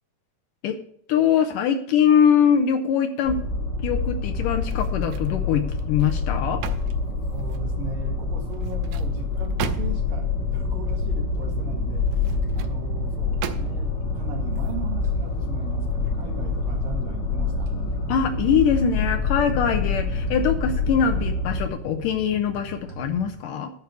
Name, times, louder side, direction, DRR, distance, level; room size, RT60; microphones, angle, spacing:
voice 1, 1.1-3.4 3.8-6.6 18.1-23.7, left 8 dB, 80° left, 7 dB, 2.0 m, -22 dB
sound 1, 3.2-21.7, left 4 dB, 65° left, 1.0 m, -26 dB
sound 2, 4.6-5.4 5.8-7.8 8.5-10.2 12.0-12.8 13.4-14.0 14.5-14.7, right 9 dB, 85° right, 2.7 m, -37 dB
voice 2, 7.3-17.7, right 4 dB, 60° right, 2 dB, 3.5 m, -38 dB
sound 3, 10.1-23.3, right 2 dB, 40° right, 1.2 m, -39 dB
11.5 x 4.8 x 8.0 m, 0.66 s
omnidirectional pair, 4.6 m